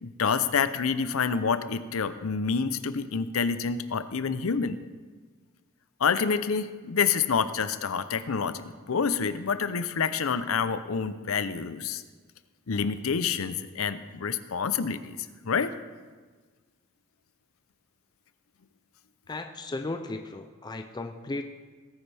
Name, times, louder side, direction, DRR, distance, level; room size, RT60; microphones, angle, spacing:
voice 1, 0.0-4.8 6.0-12.0 12.7-15.2 15.4-15.7, left 6 dB, 90° left, 12 dB, 0.6 m, -28 dB
voice 2, 19.3-21.4, left 2 dB, 20° left, 6 dB, 0.5 m, -35 dB
18.0 x 9.8 x 3.4 m, 1.4 s
head